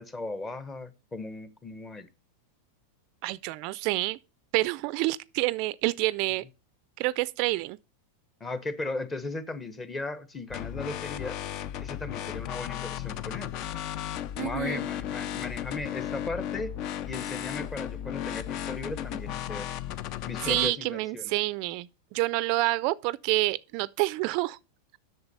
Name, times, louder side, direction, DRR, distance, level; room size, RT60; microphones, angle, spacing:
voice 1, 0.0-2.1 8.4-11.4 11.8-13.5 14.4-16.7 17.1-19.7 20.3-21.3, left 3 dB, 20° left, 1.0 m, -36 dB
voice 2, 3.2-4.2 4.5-6.4 7.0-7.8 14.4-14.8 20.4-24.6, right 20 dB, 55° right, 0.4 m, -28 dB
sound 1, 10.5-20.7, left 10 dB, 45° left, 0.5 m, -35 dB
8.0 x 6.6 x 5.4 m
hypercardioid pair, 125°, 0 cm